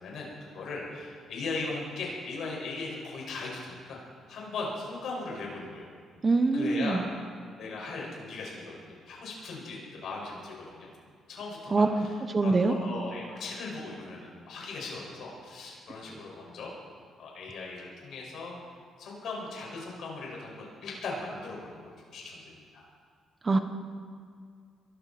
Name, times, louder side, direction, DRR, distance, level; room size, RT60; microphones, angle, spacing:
voice 1, 0.0-4.0 4.3-5.9 6.5-7.0 7.6-10.9 11.3-12.1 12.4-16.7 17.2-18.6 19.0-22.4 22.7-22.8, left 3 dB, 70° left, -2 dB, 5.7 m, -38 dB
voice 2, 6.2-7.1 11.7-11.9 12.3-12.7 23.4-23.6, right 3 dB, 30° right, 7 dB, 1.2 m, -24 dB
22.0 x 14.0 x 4.4 m, 2.1 s
cardioid pair, 90°, 0 cm